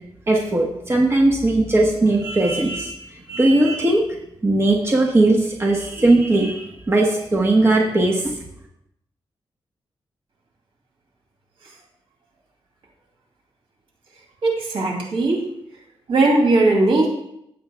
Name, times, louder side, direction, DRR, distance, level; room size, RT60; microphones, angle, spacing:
voice 1, 0.3-3.0 3.3-4.0 4.4-8.3, right 2 dB, 25° right, 0 dB, 1.2 m, -18 dB
voice 2, 14.4-15.4 16.1-17.1, right 2 dB, 75° right, -1 dB, 2.6 m, -18 dB
16.5 x 7.4 x 2.3 m, 0.78 s
wide cardioid pair, 110°, 10 cm